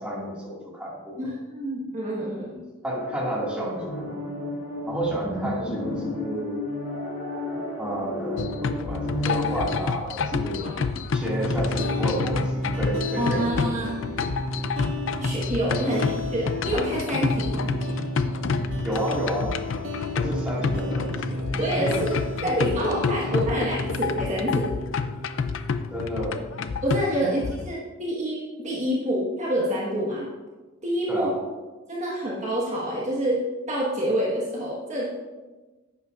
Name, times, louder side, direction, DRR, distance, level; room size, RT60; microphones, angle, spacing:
voice 1, 0.0-1.2 2.8-4.2 4.8-6.6 7.8-10.8 11.1-13.7 15.8-16.0 18.8-19.6 20.1-21.5 21.7-22.1 22.5-22.6 25.9-26.4 27.2-27.4 31.1-31.4, right 1 dB, 5° right, -6 dB, 2.0 m, -31 dB
voice 2, 1.2-2.6 10.3-10.9 13.2-13.9 15.2-17.8 21.6-22.1 22.4-24.7 26.8-30.3 30.8-31.3 31.9-35.0, right 1 dB, 30° right, -5 dB, 1.4 m, -27 dB
sound 1, 2.9-9.8, left 1 dB, 85° left, 2.5 m, -32 dB
sound 2, 8.4-27.7, left 5 dB, 60° left, 0.4 m, -29 dB
sound 3, 11.2-26.2, equal, 85° right, 1.4 m, -32 dB
11.0 x 8.2 x 2.5 m, 1.2 s
head